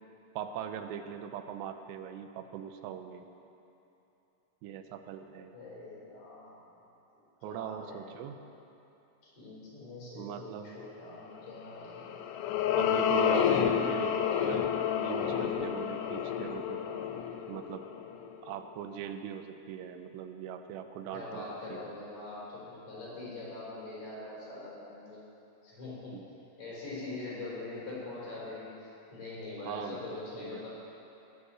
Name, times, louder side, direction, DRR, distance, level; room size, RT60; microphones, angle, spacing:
voice 1, 0.4-3.2 4.6-5.5 7.4-8.4 10.2-10.7 12.8-16.8 17.5-17.9 18.4-21.4 21.7-22.0 26.1-26.3 29.6-30.6, right 9 dB, 90° right, 8 dB, 2.9 m, -41 dB
voice 2, 5.5-6.6 7.4-8.1 9.2-12.1 21.1-25.2 25.6-26.2 26.6-28.7 29.1-30.7, left 2 dB, 45° left, -7 dB, 5.3 m, -43 dB
sound 1, 11.8-18.4, left 8 dB, 90° left, 2.8 m, -29 dB
19.5 x 6.7 x 7.5 m, 2.9 s
omnidirectional pair, 4.9 m